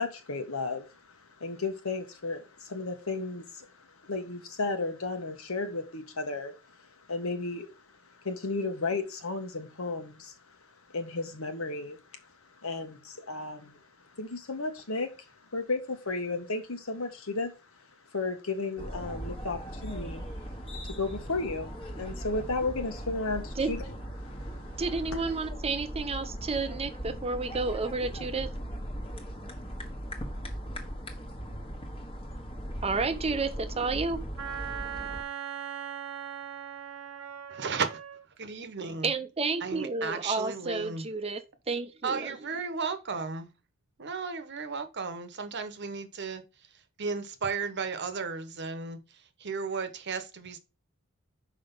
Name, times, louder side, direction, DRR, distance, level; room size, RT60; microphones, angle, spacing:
voice 1, 0.0-7.8 8.2-10.5 10.9-12.3 12.6-13.8 14.2-15.2 15.5-17.5 18.1-20.2 20.8-23.9 24.2-24.8, left 3 dB, 80° left, 1.5 m, -34 dB
sound 1, 18.8-35.2, equal, 25° left, 1.4 m, -39 dB
voice 2, 24.8-28.5 32.8-34.2 39.0-41.4 41.7-42.4, right 4 dB, 30° right, 0.7 m, -31 dB
Wind instrument woodwind instrument, 34.4-38.2, right 9 dB, 80° right, 1.0 m, -39 dB
voice 3, 37.5-38.0 38.4-39.1 39.6-41.1 42.0-43.5 44.0-46.4 47.0-50.6, right 5 dB, 55° right, 1.0 m, -34 dB
5.8 x 5.0 x 5.5 m
head